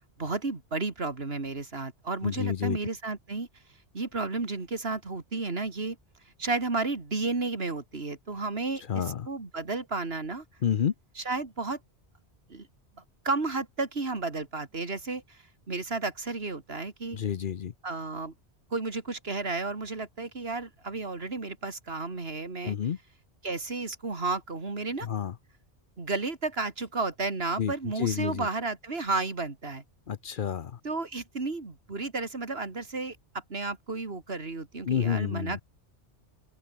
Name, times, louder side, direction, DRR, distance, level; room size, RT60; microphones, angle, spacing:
voice 1, 0.2-3.5 3.9-6.0 6.4-10.4 11.2-11.8 12.5-12.7 13.2-15.4 15.7-17.2 17.8-18.3 18.7-22.8 23.4-25.1 26.0-29.8 30.8-33.2 33.5-35.6, right 3 dB, 60° right, 2.9 m, -32 dB
voice 2, 2.2-2.8 8.9-9.3 10.6-10.9 17.1-17.7 22.6-23.0 25.0-25.3 27.6-28.5 30.1-30.8 34.9-35.6, left 8 dB, 55° left, 0.8 m, -29 dB
open air
omnidirectional pair, 1.1 m